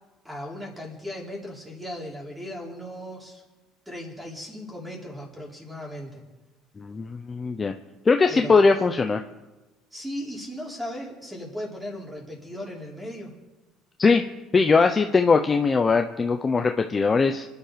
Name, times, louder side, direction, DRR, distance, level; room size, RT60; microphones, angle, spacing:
voice 1, 0.2-3.4 3.9-6.2 8.3-8.9 9.9-13.3, left 1 dB, 5° right, -2 dB, 4.4 m, -37 dB
voice 2, 6.8-7.7 8.1-9.2 14.0-14.2 14.5-17.5, left 4 dB, 20° left, 6 dB, 0.8 m, -20 dB
26.0 x 11.0 x 5.1 m, 1.1 s
cardioid pair, 130°, 0 cm